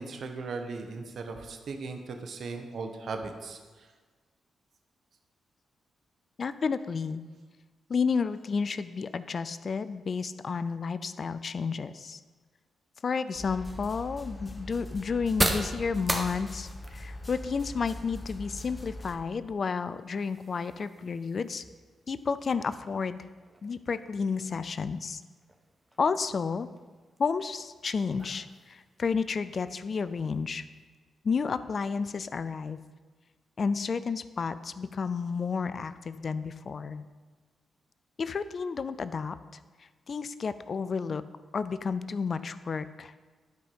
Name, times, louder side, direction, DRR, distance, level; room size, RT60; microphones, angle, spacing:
voice 1, 0.0-3.6, right 4 dB, 65° right, 5 dB, 1.1 m, -37 dB
voice 2, 6.4-7.2 7.9-12.2 13.0-21.6 22.1-23.2 23.6-25.2 26.0-26.7 27.2-30.6 31.2-32.8 33.6-37.0 38.2-39.4 40.1-41.2 41.5-43.1, left 5 dB, 55° left, 14 dB, 0.5 m, -31 dB
sound 1, 13.3-30.9, right 1 dB, 15° right, 1.4 m, -40 dB
sound 2, 13.4-19.2, left 1 dB, 20° left, 1.1 m, -42 dB
11.5 x 5.1 x 5.4 m, 1.4 s
hypercardioid pair, 45°, 0 cm